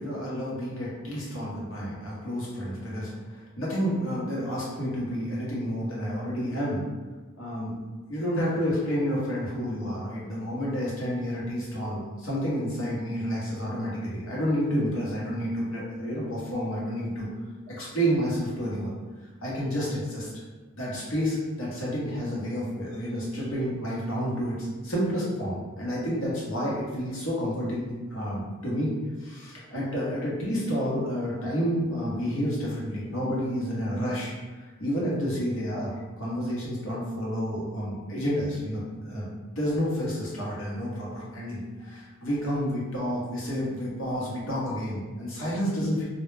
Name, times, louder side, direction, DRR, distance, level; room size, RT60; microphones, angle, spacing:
voice 1, 0.0-6.8 7.4-7.7 8.1-17.3 17.7-18.9 19.4-20.3 20.7-24.6 24.8-28.9 29.2-46.0, equal, 70° left, -6 dB, 0.9 m, -30 dB
2.2 x 2.1 x 3.1 m, 1.3 s
head